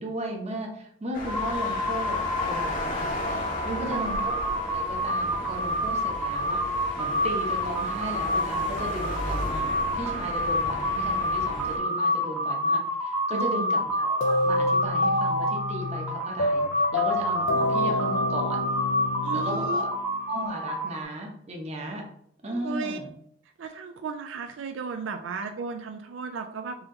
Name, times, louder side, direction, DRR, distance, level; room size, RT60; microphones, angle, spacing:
voice 1, 0.0-3.1 3.6-4.3 4.7-18.6 19.3-19.9 20.3-22.1 22.4-23.1, right 1 dB, 35° right, 1 dB, 0.8 m, -35 dB
sound 1, 1.1-11.8, left 1 dB, 45° left, 0.9 m, -35 dB
sound 2, 1.3-21.0, equal, 5° right, 0.9 m, -28 dB
voice 2, 3.7-4.2 13.3-13.8 19.2-19.9 22.5-23.0 23.6-26.9, right 4 dB, 85° right, 6 dB, 0.4 m, -35 dB
sound 3, 14.2-20.4, left 2 dB, 75° left, 0.4 m, -28 dB
4.1 x 2.8 x 3.7 m, 0.70 s
head